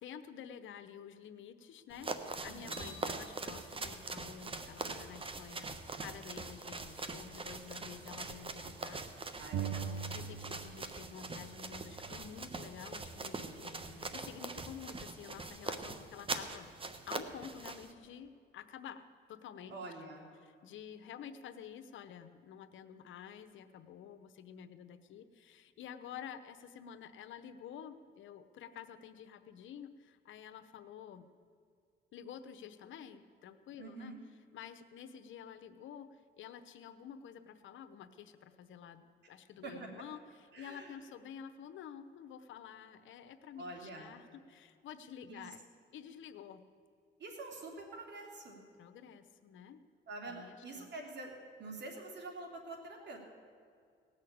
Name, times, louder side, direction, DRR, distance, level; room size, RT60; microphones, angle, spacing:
voice 1, 0.0-9.0 9.3-9.4 9.8-16.7 17.1-19.8 20.4-31.3 32.1-34.1 34.5-45.6 45.9-46.6 48.8-49.8 50.3-50.9, left 8 dB, 75° left, 10 dB, 0.9 m, -50 dB
sound 1, 1.9-17.9, right 3 dB, 25° right, 1.0 m, -43 dB
voice 2, 2.5-2.9 9.4-10.0 13.6-14.0 19.7-20.3 33.8-34.2 39.6-39.9 40.5-41.0 43.6-44.1 45.3-45.5 47.2-48.6 50.1-53.2, right 2 dB, 60° right, 1 dB, 2.9 m, -47 dB
sound 2, 2.7-5.0, left 1 dB, 20° left, 1.4 m, -54 dB
sound 3, 9.5-11.0 11.3-13.1, right 7 dB, 80° right, 0.7 m, -42 dB
18.0 x 6.5 x 8.6 m, 2.2 s
cardioid pair, 90°, 20 cm